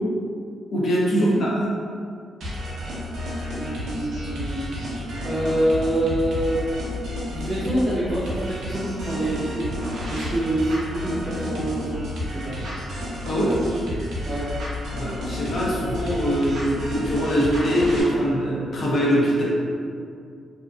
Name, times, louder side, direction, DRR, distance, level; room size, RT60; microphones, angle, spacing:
voice 1, 0.7-1.5 13.2-13.6 14.9-19.4, equal, 55° left, -6 dB, 0.7 m, -22 dB
sound 1, 2.4-18.0, left 1 dB, 80° right, 0.7 m, -31 dB
voice 2, 3.5-4.6 5.2-6.6 7.2-9.7 10.1-12.0 12.3-12.6 14.2-14.5, right 1 dB, 25° right, -10 dB, 0.5 m, -26 dB
2.7 x 2.4 x 2.3 m, 2.3 s
cardioid pair, 130°, 0 cm